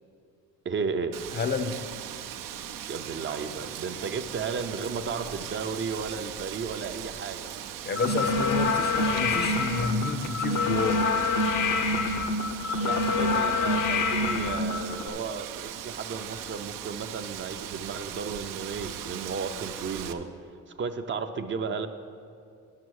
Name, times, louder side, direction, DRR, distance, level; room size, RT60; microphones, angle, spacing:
voice 1, 0.6-1.2 2.9-7.5 12.8-20.3 20.8-21.9, right 5 dB, 40° right, 7 dB, 0.5 m, -34 dB
Wind, 1.1-20.1, right 10 dB, 85° right, 0.6 m, -39 dB
voice 2, 1.3-1.8 7.9-11.0, left 4 dB, 30° left, 9 dB, 0.5 m, -30 dB
sound 1, 8.0-15.1, left 3 dB, 80° left, 0.9 m, -26 dB
10.5 x 6.1 x 6.3 m, 2.3 s
cardioid pair, 115°, 32 cm